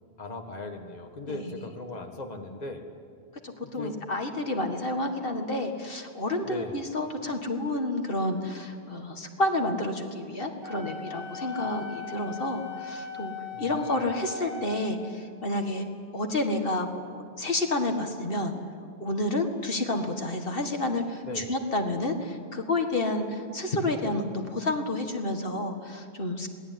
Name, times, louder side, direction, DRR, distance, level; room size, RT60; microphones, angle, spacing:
voice 1, 0.2-2.8 3.6-4.0 6.4-6.8 13.5-14.1 21.2-21.5, left 2 dB, 40° left, 3 dB, 1.9 m, -38 dB
voice 2, 3.4-13.3 13.6-15.9 16.1-18.5 19.0-26.5, left 2 dB, 60° left, 4 dB, 2.1 m, -30 dB
Wind instrument woodwind instrument, 10.6-14.8, left 6 dB, 30° right, 6.2 m, -39 dB
27.0 x 19.5 x 9.5 m, 2.2 s
omnidirectional pair, 1.1 m